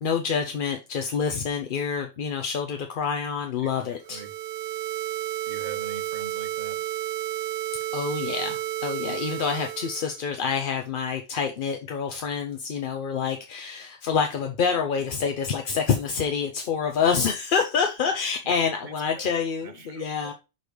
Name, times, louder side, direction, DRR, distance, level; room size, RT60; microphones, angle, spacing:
voice 1, 0.0-4.2 7.9-20.3, left 6 dB, 55° left, 0.7 m, -27 dB
voice 2, 3.6-4.4 5.4-6.9 18.4-18.5 18.8-19.3 19.6-20.3, right 6 dB, 45° right, 0.9 m, -43 dB
sound 1, 4.0-10.2, right 13 dB, 75° right, 0.9 m, -32 dB
6.3 x 3.2 x 5.0 m
omnidirectional pair, 1.2 m